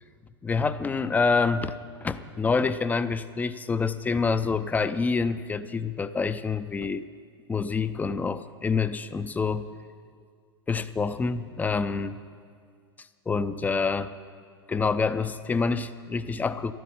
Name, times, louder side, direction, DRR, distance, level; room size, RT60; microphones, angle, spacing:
voice 1, 0.4-1.7 2.0-7.0 7.5-9.7 10.7-12.2 13.3-14.1 14.7-16.7, left 4 dB, 10° left, 13 dB, 0.5 m, -27 dB
12.5 x 11.5 x 8.6 m, 2.1 s
figure-of-eight pair, 90°, 14 cm